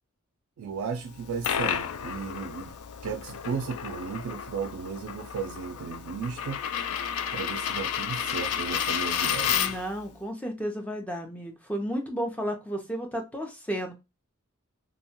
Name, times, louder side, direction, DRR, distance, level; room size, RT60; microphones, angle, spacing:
voice 1, 0.6-2.7 3.0-6.6 7.3-9.7, right 5 dB, 90° right, 0.3 m, -35 dB
Coin (dropping), 1.1-10.0, left 8 dB, 90° left, 0.3 m, -31 dB
voice 2, 9.5-13.9, equal, 5° left, 0.5 m, -33 dB
2.7 x 2.2 x 2.8 m
head